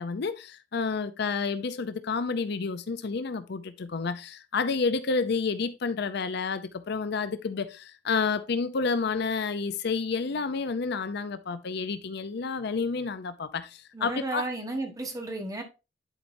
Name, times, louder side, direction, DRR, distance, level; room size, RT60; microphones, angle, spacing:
voice 1, 0.0-14.5, left 4 dB, 60° left, 0.5 m, -30 dB
voice 2, 13.9-15.6, right 2 dB, 20° right, 1.3 m, -33 dB
10.5 x 4.5 x 2.6 m
head